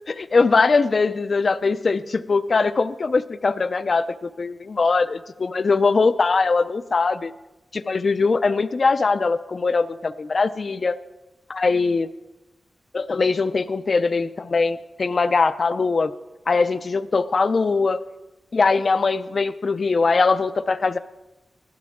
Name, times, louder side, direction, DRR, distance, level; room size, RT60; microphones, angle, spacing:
voice 1, 0.0-7.3 7.7-11.0 11.5-12.1 12.9-16.1 16.5-18.0 18.5-21.0, left 4 dB, 50° left, 11 dB, 0.4 m, -21 dB
16.0 x 11.5 x 3.6 m, 1.0 s
wide cardioid pair, 120°, 0 cm